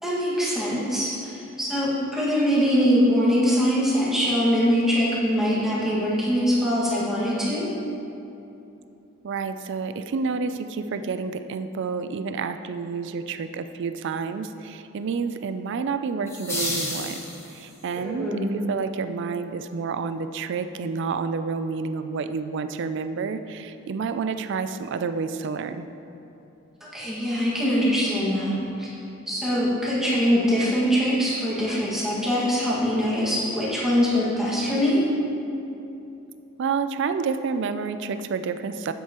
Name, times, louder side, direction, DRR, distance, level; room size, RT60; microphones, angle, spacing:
voice 1, 0.0-7.7 18.0-18.5 26.8-28.9 29.3-35.0, equal, ahead, -8 dB, 1.8 m, -23 dB
voice 2, 9.2-17.2 17.5-25.9 36.6-38.9, right 5 dB, 60° right, 10 dB, 0.4 m, -29 dB
sound 1, 16.3-17.8, left 1 dB, 15° left, 1.4 m, -31 dB
9.5 x 8.1 x 3.0 m, 2.9 s
head